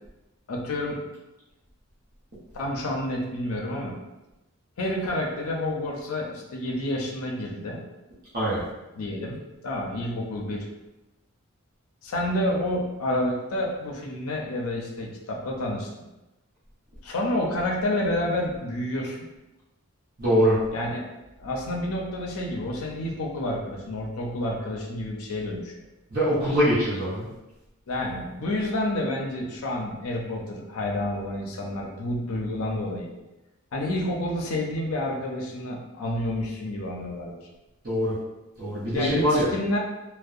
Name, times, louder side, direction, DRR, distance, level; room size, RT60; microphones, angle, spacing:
voice 1, 0.5-1.0 2.5-4.0 4.8-7.8 9.0-9.4 9.6-10.7 12.0-15.9 17.0-19.3 20.7-21.1 21.4-25.7 27.9-33.1 33.7-37.4 38.9-39.8, left 1 dB, 80° left, 0 dB, 0.5 m, -29 dB
voice 2, 20.2-20.6 26.1-27.3 37.8-38.2 38.6-39.5, equal, 40° right, -11 dB, 0.7 m, -23 dB
2.6 x 2.0 x 2.4 m, 1.0 s
head